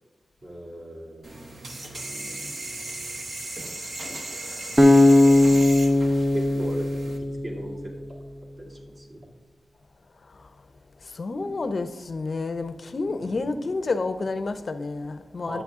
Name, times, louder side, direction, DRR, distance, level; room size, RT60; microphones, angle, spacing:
voice 1, 0.4-1.6 3.4-3.5 6.3-7.8 8.1-8.2 8.6-9.3 11.4-11.5 13.2-13.6 15.5-15.6, right 1 dB, 45° right, 2.6 m, -38 dB
sound 1, 1.2-7.2, right 2 dB, 60° right, 1.4 m, -36 dB
Acoustic guitar, 4.8-8.0, left 1 dB, 15° right, 0.8 m, -18 dB
voice 2, 11.0-15.6, left 3 dB, 50° left, 0.6 m, -30 dB
10.5 x 8.1 x 3.6 m
wide cardioid pair, 90°, 0 cm